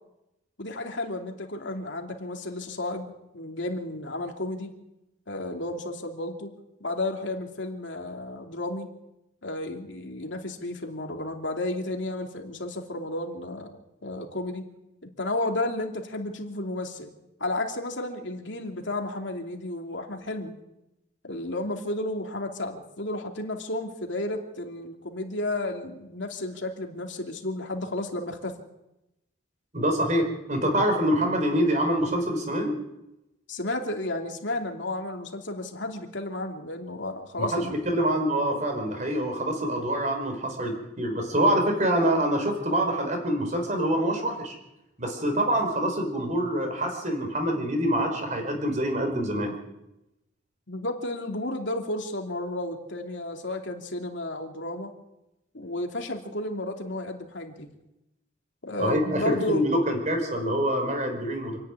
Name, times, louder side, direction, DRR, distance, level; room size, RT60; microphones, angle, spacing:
voice 1, 0.6-4.7 5.3-6.5 6.8-8.9 9.4-13.7 14.0-14.6 15.2-17.1 17.4-20.5 21.2-28.5 33.5-37.8 50.7-54.9 55.5-57.7 58.6-59.7, left 2 dB, 70° left, 3 dB, 2.6 m, -32 dB
voice 2, 29.7-32.7 37.4-44.5 45.0-49.5 58.8-61.6, right 1 dB, 40° right, 4 dB, 5.0 m, -25 dB
27.0 x 10.5 x 9.6 m, 0.91 s
head